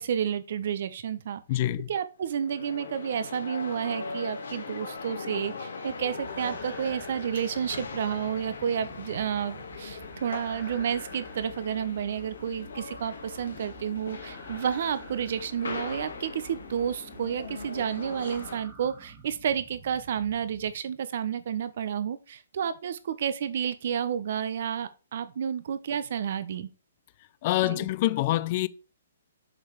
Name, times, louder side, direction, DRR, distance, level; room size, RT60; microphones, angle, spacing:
voice 1, 0.0-1.4 1.9-26.7 27.6-27.9, right 8 dB, 55° right, 1.1 m, -31 dB
voice 2, 1.5-1.9 27.4-28.7, left 16 dB, 40° left, 0.5 m, -26 dB
sound 1, 2.2-18.6, left 4 dB, 80° left, 2.0 m, -40 dB
sound 2, 5.9-20.7, right 3 dB, 15° right, 2.0 m, -50 dB
7.3 x 4.9 x 4.8 m
hypercardioid pair, 150°, 0 cm